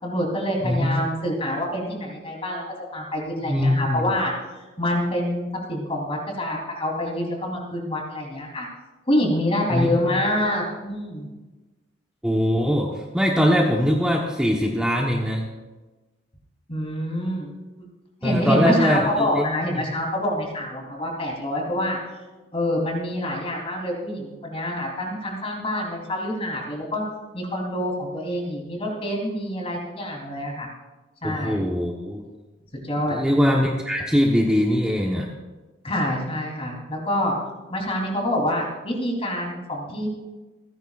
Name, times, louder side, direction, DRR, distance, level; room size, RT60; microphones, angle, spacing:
voice 1, 0.0-2.6 2.9-4.3 4.8-8.7 9.1-11.3 16.7-17.5 18.2-22.0 22.5-27.0 27.3-30.7 31.2-31.6 32.8-33.2 35.8-37.3 37.7-40.1, left 1 dB, 30° left, -1 dB, 3.5 m, -26 dB
voice 2, 3.4-4.0 9.7-10.1 12.2-15.5 18.2-19.3 19.7-19.8 31.2-32.2 33.0-35.3, equal, 5° right, -2 dB, 1.1 m, -22 dB
28.5 x 10.0 x 2.5 m, 1.2 s
head